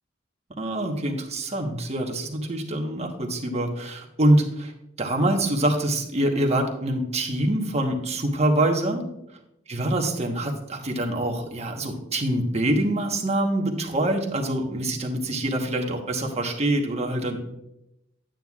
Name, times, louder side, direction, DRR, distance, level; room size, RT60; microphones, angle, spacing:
voice 1, 0.6-4.7 5.0-9.1 9.7-17.4, right 1 dB, 35° right, 2 dB, 1.2 m, -25 dB
10.5 x 9.0 x 2.4 m, 0.84 s
head